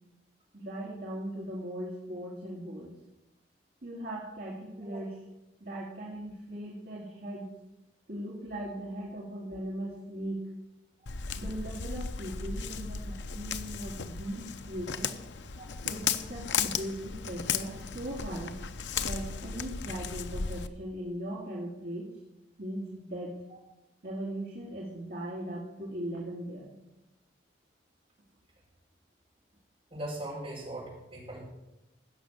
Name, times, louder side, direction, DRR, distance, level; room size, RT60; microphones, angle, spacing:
voice 1, 0.5-2.9 3.8-5.2 5.6-7.5 8.1-10.5 11.4-15.2 15.8-18.6 19.0-22.1 22.6-23.4 24.0-26.8, right 1 dB, 55° right, -5 dB, 2.1 m, -39 dB
Walk footsteps, 11.1-20.7, left 6 dB, 75° left, 0.6 m, -35 dB
voice 2, 29.9-31.4, right 1 dB, 30° right, -5 dB, 5.3 m, -40 dB
15.5 x 6.2 x 6.5 m, 0.95 s
head